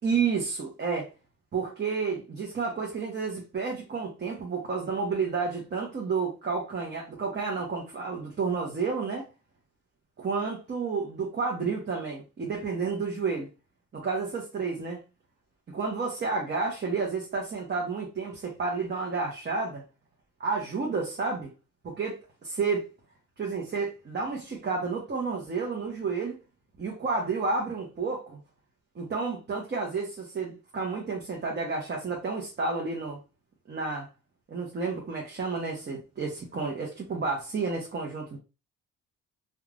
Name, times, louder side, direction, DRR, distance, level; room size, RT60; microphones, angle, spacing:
voice 1, 0.0-1.1 1.5-9.3 10.2-13.5 13.9-15.0 15.7-19.8 20.4-21.5 21.8-22.9 23.4-26.4 26.8-28.4 28.9-33.2 33.7-34.1 34.5-38.4, right 4 dB, 35° right, 0.9 m, -31 dB
3.1 x 2.4 x 2.4 m
cardioid pair, 90°, 30 cm